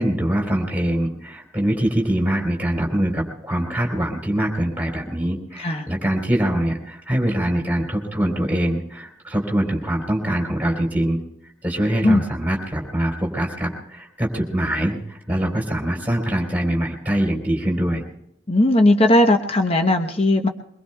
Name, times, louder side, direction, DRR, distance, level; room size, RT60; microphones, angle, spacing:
voice 1, 0.0-11.2 11.6-18.0, right 1 dB, 10° right, 0 dB, 3.5 m, -23 dB
voice 2, 18.5-20.5, left 1 dB, 30° left, 5 dB, 0.8 m, -17 dB
23.5 x 22.0 x 2.3 m, 0.77 s
head